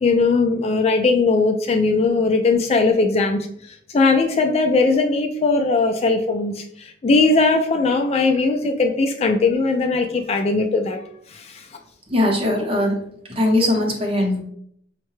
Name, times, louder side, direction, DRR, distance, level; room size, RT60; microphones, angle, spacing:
voice 1, 0.0-3.5 3.9-11.0 11.3-11.7, left 3 dB, 35° left, 4 dB, 0.3 m, -19 dB
voice 2, 12.1-14.4, left 1 dB, 30° right, 2 dB, 0.7 m, -20 dB
5.5 x 2.2 x 3.1 m, 0.68 s
head